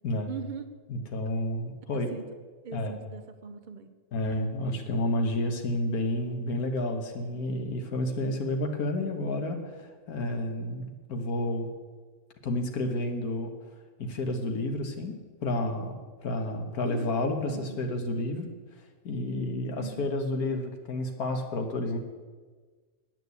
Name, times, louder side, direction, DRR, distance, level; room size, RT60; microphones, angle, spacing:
voice 1, 0.3-0.7 1.9-2.2 2.6-3.9 16.8-17.8 19.8-20.1, right 6 dB, 40° right, 8 dB, 0.8 m, -41 dB
voice 2, 0.9-2.1 2.7-3.0 4.1-11.7 12.4-13.5 14.0-15.1 15.4-15.9 16.2-18.5 19.0-22.0, left 1 dB, 80° left, 5 dB, 1.8 m, -30 dB
9.1 x 9.0 x 8.2 m, 1.5 s
omnidirectional pair, 1.5 m